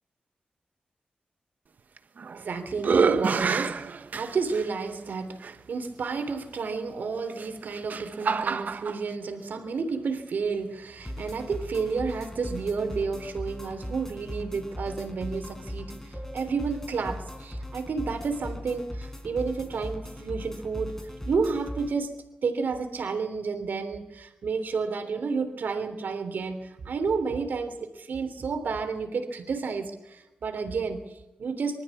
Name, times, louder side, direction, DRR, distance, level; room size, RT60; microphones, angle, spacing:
sound 1, 2.0-2.4 2.8-4.7 5.4-5.5 7.3-9.0, right 5 dB, 70° right, 1.2 m, -27 dB
voice 1, 2.3-22.2 22.4-31.8, right 4 dB, 85° right, 7 dB, 3.3 m, -31 dB
sound 2, 11.0-21.9, left 1 dB, 15° left, 4.5 m, -39 dB
24.5 x 13.5 x 8.4 m, 0.95 s
wide cardioid pair, 100°, 3 cm